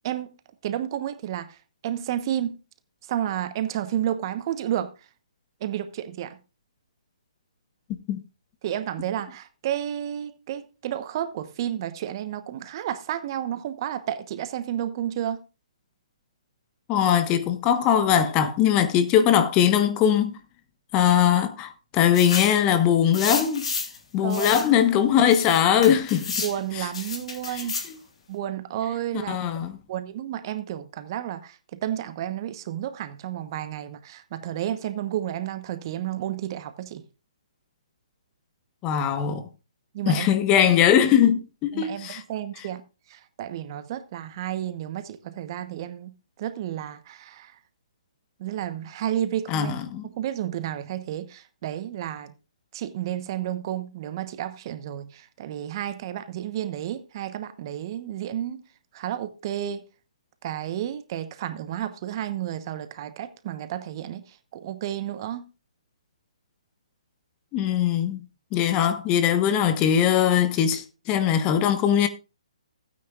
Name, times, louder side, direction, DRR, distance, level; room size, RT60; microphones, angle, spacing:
voice 1, 0.0-0.3 0.6-1.6 1.8-2.6 3.1-4.9 5.6-6.4 8.6-15.4 24.2-24.5 26.4-27.8 28.3-29.4 29.9-37.0 39.9-40.3 40.5-40.7 41.7-42.8 43.1-46.1 46.4-47.5 48.4-49.7 50.0-52.3 52.7-58.6 58.9-59.9 60.4-65.4, right 11 dB, 40° right, 1.0 m, -31 dB
voice 2, 16.9-20.4 20.9-23.6 24.1-26.4 26.7-26.9 27.5-27.6 29.3-29.8 38.8-39.4 40.1-42.2 49.5-50.0 67.5-68.2 68.5-72.1, left 9 dB, 25° left, 1.2 m, -21 dB
sound 1, 22.1-22.6 23.1-24.0 24.3-24.7 25.3-26.6 26.9-27.9, left 4 dB, 65° left, 3.1 m, -31 dB
16.0 x 9.3 x 2.4 m
hypercardioid pair, 140°, 4 cm